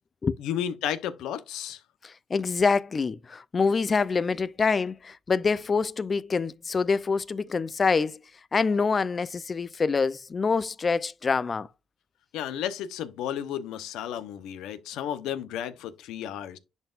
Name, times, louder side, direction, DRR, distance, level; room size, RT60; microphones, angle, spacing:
voice 1, 0.4-1.8 12.3-16.6, left 10 dB, 90° left, 0.8 m, -33 dB
voice 2, 2.0-8.2 8.5-11.7, left 4 dB, 35° left, 0.5 m, -26 dB
10.5 x 4.2 x 2.5 m
cardioid pair, 90°, 0 cm